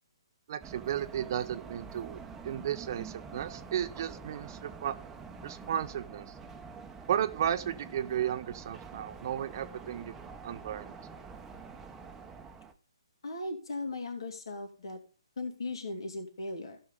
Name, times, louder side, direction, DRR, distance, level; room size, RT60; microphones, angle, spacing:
voice 1, 0.5-5.0 5.4-6.3 7.1-10.2 10.4-10.9, right 10 dB, 45° right, 13 dB, 0.7 m, -34 dB
sound 1, 0.6-12.7, right 5 dB, 10° right, 1.0 m, -46 dB
voice 2, 13.2-15.0 15.4-16.8, left 2 dB, 60° left, 5 dB, 3.0 m, -37 dB
15.5 x 6.3 x 3.9 m, 0.35 s
figure-of-eight pair, 135°, 3 cm